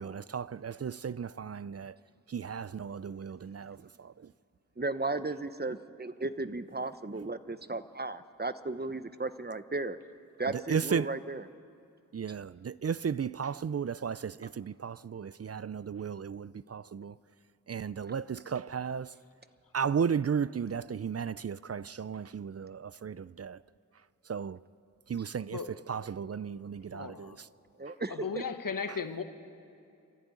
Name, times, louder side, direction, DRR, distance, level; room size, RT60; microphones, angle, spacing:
voice 1, 0.0-2.0 2.3-4.3 10.5-11.1 12.1-17.2 17.7-19.1 19.7-23.6 24.3-24.6 25.1-27.5 28.9-29.0, right 7 dB, 50° right, 0.5 m, -35 dB
voice 2, 4.8-10.0 10.4-11.4 27.8-28.4, right 3 dB, 30° right, 0.9 m, -35 dB
voice 3, 26.9-27.4 28.1-29.2, left 5 dB, 85° left, 1.3 m, -36 dB
24.5 x 14.0 x 9.6 m
wide cardioid pair, 45°, 32 cm